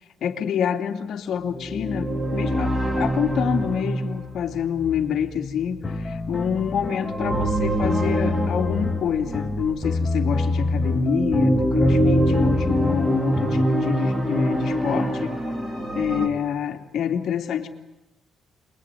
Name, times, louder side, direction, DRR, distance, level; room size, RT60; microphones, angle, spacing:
voice 1, 0.2-15.3 15.9-17.7, left 8 dB, 70° left, 4 dB, 3.0 m, -27 dB
sound 1, 1.5-9.9 10.6-16.3, right 1 dB, 15° right, 5.7 m, -25 dB
sound 2, 5.8-13.7, left 4 dB, 20° left, 2.3 m, -27 dB
28.0 x 22.5 x 9.4 m, 1.0 s
cardioid pair, 90°, 0 cm